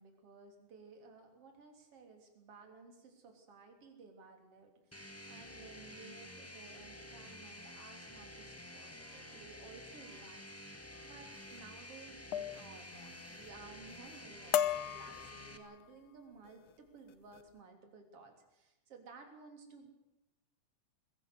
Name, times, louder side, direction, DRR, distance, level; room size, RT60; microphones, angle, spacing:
voice 1, 0.0-19.9, right 4 dB, 50° right, 4 dB, 4.2 m, -56 dB
sound 1, 4.9-15.6, left 1 dB, 10° left, 0.8 m, -51 dB
sound 2, 11.3-11.6 12.3-12.7 13.0-13.5 13.9-14.2 14.5-15.9 16.5-16.7 17.1-17.4, left 11 dB, 80° left, 1.1 m, -37 dB
21.5 x 16.5 x 8.1 m, 0.94 s
omnidirectional pair, 3.5 m